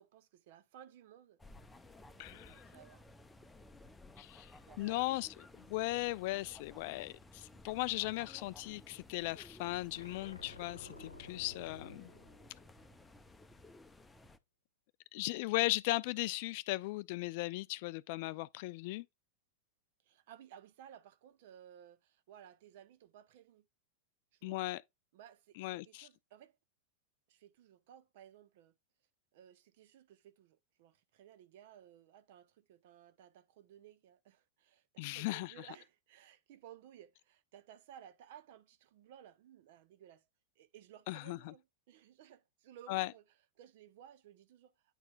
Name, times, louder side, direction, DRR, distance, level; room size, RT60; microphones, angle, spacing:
voice 1, 0.0-1.4 2.2-3.0 4.6-5.1 10.8-11.0 20.0-23.7 24.3-24.6 25.1-26.6 27.3-28.7 29.3-40.3 40.6-43.2 43.6-44.7, right 10 dB, 50° right, 0.8 m, -58 dB
sound 1, 1.4-14.4, left 2 dB, 10° left, 0.7 m, -57 dB
voice 2, 2.2-2.6 4.2-4.5 4.8-12.1 15.1-19.1 24.4-24.8 25.6-26.1 35.0-35.7 41.1-41.5 42.9-43.1, left 20 dB, 50° left, 0.3 m, -37 dB
sound 2, 9.9-13.3, left 3 dB, 80° left, 0.9 m, -54 dB
9.8 x 4.3 x 2.4 m
figure-of-eight pair, 90°, 0 cm